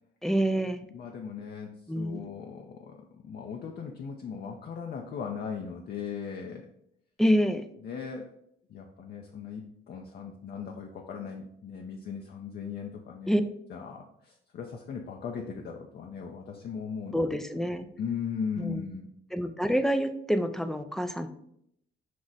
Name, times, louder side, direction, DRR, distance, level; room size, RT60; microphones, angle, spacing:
voice 1, 0.2-0.8 1.9-2.2 7.2-7.6 13.3-13.4 17.1-17.9 18.6-18.8 19.3-21.3, equal, ahead, 9 dB, 0.4 m, -27 dB
voice 2, 0.9-6.7 7.8-8.3 8.7-13.4 13.7-17.3 18.0-19.1, left 6 dB, 55° left, 1 dB, 0.5 m, -38 dB
6.0 x 2.1 x 3.9 m, 0.73 s
cardioid pair, 90°, 20 cm